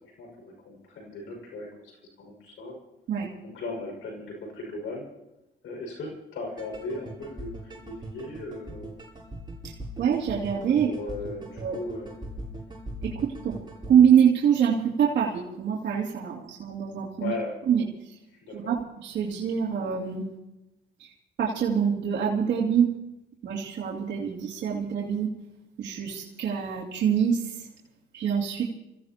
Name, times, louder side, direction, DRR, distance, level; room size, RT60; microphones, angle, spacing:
voice 1, 0.0-2.8 3.4-5.1 5.6-9.0 10.8-12.2 17.2-17.6 18.3-18.7, left 2 dB, 80° left, 0 dB, 5.7 m, -37 dB
sound 1, 6.6-14.0, right 1 dB, 20° right, 8.0 m, -40 dB
voice 2, 9.6-10.9 11.6-11.8 13.0-17.3 17.7-18.2 18.5-20.3 21.0-21.1 21.4-22.9 23.4-25.3 25.8-27.7 28.1-28.6, right 8 dB, 65° right, -6 dB, 2.8 m, -25 dB
28.5 x 15.5 x 2.9 m, 0.93 s
cardioid pair, 90°, 20 cm